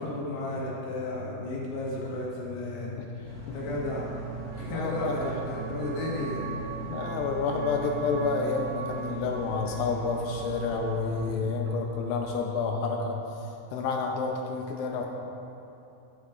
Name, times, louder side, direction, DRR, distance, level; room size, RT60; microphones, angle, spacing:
voice 1, 0.0-4.1 4.5-6.4, left 2 dB, 65° left, -5 dB, 3.3 m, -33 dB
sound 1, 2.8-12.4, right 4 dB, 90° right, 3.2 m, -42 dB
sound 2, 3.2-11.4, right 5 dB, 50° right, 3.0 m, -39 dB
voice 2, 4.7-5.2 6.9-13.2 13.7-15.1, left 5 dB, 80° left, 1 dB, 2.8 m, -29 dB
11.5 x 10.5 x 2.4 m, 2.8 s
omnidirectional pair, 5.7 m